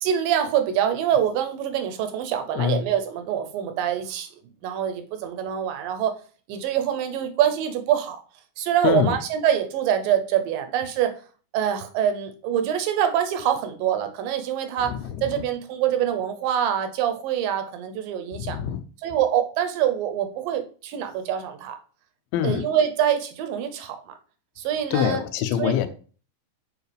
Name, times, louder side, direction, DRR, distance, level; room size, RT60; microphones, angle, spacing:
voice 1, 0.0-4.3 4.6-6.2 6.5-8.2 8.6-11.1 11.5-18.6 19.0-21.8 22.4-24.1 24.6-25.2 25.6-25.8, right 9 dB, 80° right, 2.2 m, -25 dB
voice 2, 8.8-9.2 14.8-15.2 18.3-18.8 22.3-22.6 24.9-25.9, left 10 dB, 85° left, 2.5 m, -24 dB
7.4 x 4.7 x 3.3 m
omnidirectional pair, 4.3 m